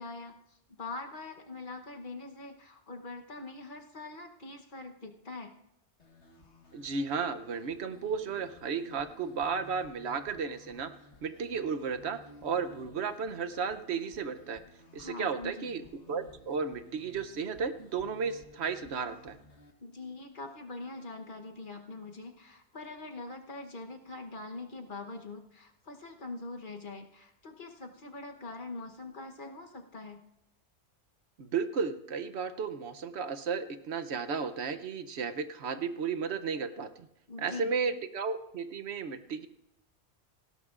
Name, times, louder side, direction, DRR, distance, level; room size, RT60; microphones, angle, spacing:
voice 1, 0.0-5.5 15.0-15.7 19.8-30.2 37.3-37.7, left 3 dB, 45° left, 3 dB, 1.2 m, -43 dB
sound 1, 6.0-19.7, left 1 dB, 75° left, 1.8 m, -56 dB
voice 2, 6.7-10.9 11.2-14.6 14.9-15.8 16.1-19.3 31.4-36.9 37.4-39.5, right 5 dB, 70° right, 10 dB, 1.0 m, -34 dB
18.5 x 16.5 x 2.5 m, 0.81 s
omnidirectional pair, 1.2 m